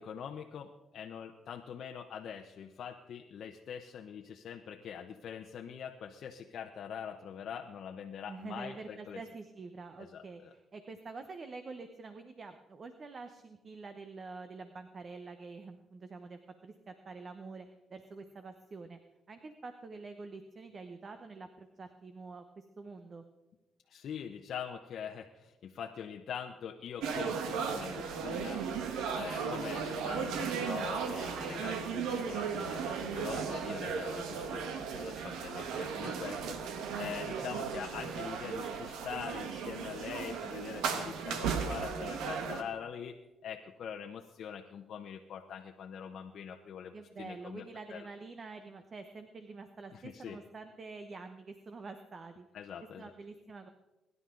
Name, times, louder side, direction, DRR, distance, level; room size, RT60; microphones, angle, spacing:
voice 1, 0.0-9.2 10.0-10.5 23.9-28.9 29.1-43.2 43.4-47.6 47.9-48.1 49.9-50.4 52.5-53.1, left 8 dB, 65° left, 3 dB, 0.9 m, -43 dB
voice 2, 8.3-19.0 19.3-23.2 46.9-52.5 53.0-53.7, right 4 dB, 40° right, 8 dB, 1.0 m, -47 dB
sound 1, 27.0-42.6, right 6 dB, 90° right, 1.4 m, -36 dB
22.5 x 11.0 x 3.9 m, 1.1 s
cardioid pair, 90°, 0 cm